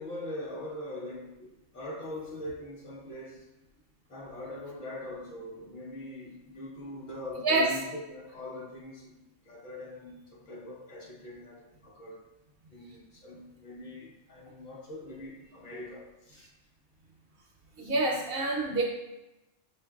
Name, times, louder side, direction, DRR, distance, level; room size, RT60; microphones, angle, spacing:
voice 1, 0.0-3.5 4.1-12.2 12.7-16.5, left 1 dB, 45° left, -3 dB, 0.9 m, -42 dB
voice 2, 7.4-7.8 17.8-18.8, right 2 dB, 55° right, -1 dB, 0.7 m, -27 dB
6.6 x 2.6 x 2.3 m, 0.97 s
omnidirectional pair, 1.3 m